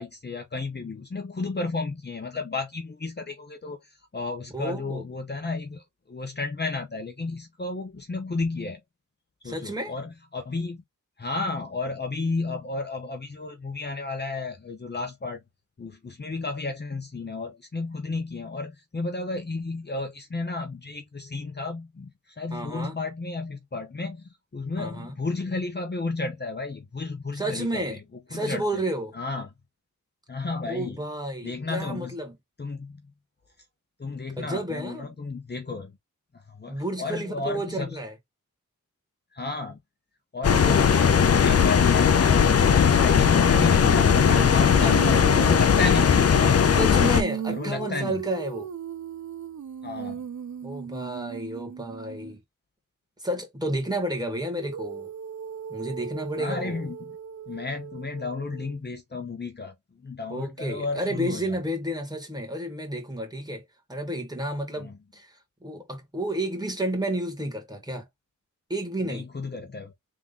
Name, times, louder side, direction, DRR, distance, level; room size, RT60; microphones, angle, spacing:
voice 1, 0.0-8.8 9.4-10.8 11.2-15.4 15.8-28.0 28.3-28.6 29.1-29.5 30.3-31.0 31.4-32.1 32.6-33.0 34.0-35.9 36.3-38.0 39.3-39.8 40.3-46.8 47.5-48.2 49.8-50.2 56.4-57.0 57.5-61.6 64.8-65.0 69.0-69.9, left 3 dB, 35° left, 0.9 m, -33 dB
voice 2, 4.5-5.0 9.4-9.9 22.5-23.0 24.8-25.1 27.3-28.0 28.3-29.2 30.7-32.4 34.3-35.2 36.7-38.1 40.4-41.3 44.6-45.0 46.8-48.7 50.6-52.4 53.2-55.1 55.7-56.9 60.3-68.1 68.7-69.3, right 1 dB, 15° right, 1.9 m, -31 dB
sound 1, 40.4-47.2, left 7 dB, 50° left, 0.6 m, -18 dB
Female singing, 43.5-52.4 54.6-58.8, right 8 dB, 65° right, 0.7 m, -37 dB
3.7 x 3.0 x 3.8 m
wide cardioid pair, 95°, 31 cm